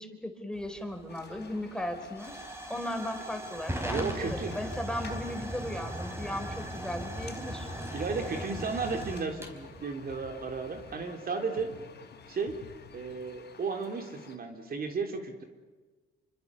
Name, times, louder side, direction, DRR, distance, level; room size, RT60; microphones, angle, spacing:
voice 1, 0.0-2.3 2.7-7.7, left 1 dB, 5° left, 6 dB, 4.3 m, -36 dB
Hiss / Fire / Tick, 0.5-10.9, right 1 dB, 15° right, 5.0 m, -39 dB
sound 1, 1.1-14.4, left 6 dB, 55° left, 4.1 m, -53 dB
sound 2, 3.2-13.7, left 6 dB, 80° left, 4.6 m, -54 dB
voice 2, 3.8-4.5 5.0-5.2 7.9-11.7 12.3-12.6 12.9-15.4, right 4 dB, 50° right, 4 dB, 3.5 m, -34 dB
28.0 x 24.5 x 7.0 m, 1.3 s
cardioid pair, 90°, 20 cm